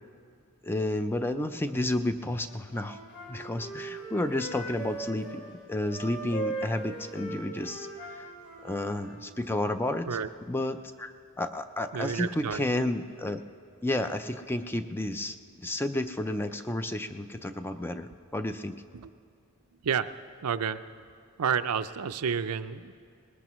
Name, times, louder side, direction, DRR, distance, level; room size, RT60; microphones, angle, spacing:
voice 1, 0.6-3.0 3.3-5.4 5.7-8.3 8.6-10.1 10.5-13.4 13.8-18.8, left 1 dB, 10° left, 9 dB, 0.4 m, -31 dB
Wind instrument woodwind instrument, 2.4-5.4 5.9-9.2, right 2 dB, 50° left, 3.6 m, -39 dB
voice 2, 11.9-12.8 18.9-19.1 19.7-20.1 20.4-20.8 21.4-22.9, right 7 dB, 80° right, 12 dB, 0.5 m, -30 dB
20.5 x 19.5 x 3.1 m, 2.4 s
head